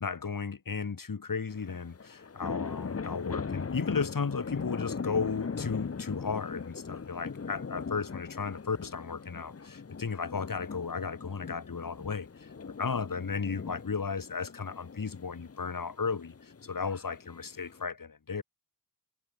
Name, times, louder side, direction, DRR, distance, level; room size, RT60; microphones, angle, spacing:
voice 1, 0.0-18.4, left 5 dB, 60° left, 3.7 m, -35 dB
sound 1, 1.5-17.8, left 5 dB, 40° left, 1.1 m, -40 dB
cardioid pair, 70°, 38 cm